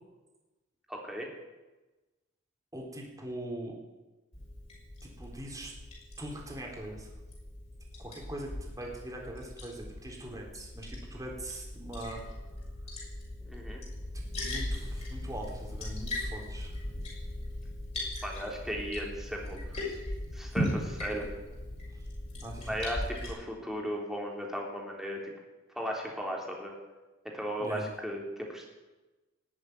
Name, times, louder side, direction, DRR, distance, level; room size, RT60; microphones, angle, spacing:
voice 1, 0.9-1.3 13.4-13.8 18.2-19.6 20.3-21.2 22.6-25.3 25.7-26.7 27.3-28.2 28.5-28.7, equal, ahead, -1 dB, 3.4 m, -36 dB
voice 2, 2.7-3.8 5.0-5.7 6.2-7.1 8.0-12.2 13.5-13.6 13.9-16.8 21.1-21.2 21.9-22.1 22.4-22.7 27.6-27.9, right 1 dB, 15° right, -1 dB, 3.8 m, -42 dB
Liquid, 4.3-23.3, left 1 dB, 35° left, 6.2 m, -39 dB
18.5 x 8.2 x 9.5 m, 1.1 s
head